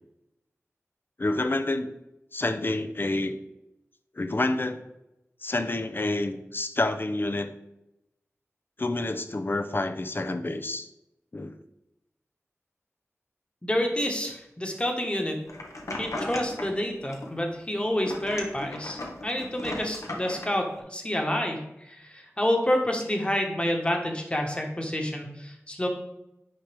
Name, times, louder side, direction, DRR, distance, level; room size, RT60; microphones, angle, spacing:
voice 1, 1.2-1.9 2.3-3.4 4.2-4.8 5.4-7.5 8.8-10.9 11.3-11.5, left 2 dB, 45° left, 9 dB, 0.6 m, -28 dB
voice 2, 13.6-15.4 16.0-21.6 21.9-25.9, left 1 dB, 20° left, 2 dB, 1.4 m, -28 dB
sound 1, 15.5-16.8 17.1-17.7 18.0-20.5, left 1 dB, 80° left, 1.2 m, -36 dB
9.1 x 5.1 x 3.4 m, 0.90 s
wide cardioid pair, 70°, 5 cm